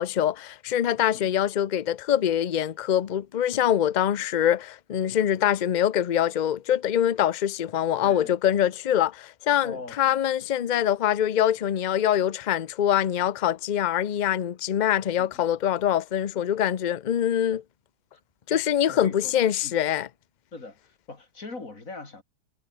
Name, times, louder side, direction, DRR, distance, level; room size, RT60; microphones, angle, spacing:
voice 1, 0.0-17.6 18.5-20.1, left 10 dB, 70° left, 0.4 m, -24 dB
voice 2, 8.0-8.4 9.6-10.0 15.2-15.5 18.1-18.2 18.5-18.6 18.9-19.3 19.6-19.8 20.5-22.2, left 3 dB, 50° left, 4.0 m, -41 dB
omnidirectional pair, 1.8 m